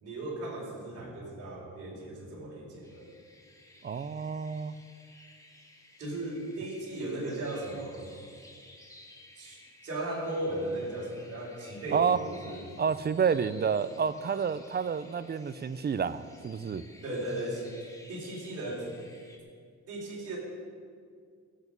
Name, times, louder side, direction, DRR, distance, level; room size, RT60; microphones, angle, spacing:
voice 1, 0.0-3.1 6.0-8.1 9.4-12.7 17.0-17.7 18.1-18.9 19.9-20.4, right 1 dB, 50° right, -4 dB, 4.2 m, -36 dB
sound 1, 2.8-19.4, left 1 dB, 10° left, 2.1 m, -56 dB
voice 2, 3.8-4.7 11.9-12.2 12.5-16.8, right 6 dB, 35° right, 15 dB, 0.6 m, -29 dB
19.5 x 8.3 x 5.3 m, 2.1 s
cardioid pair, 90°, 30 cm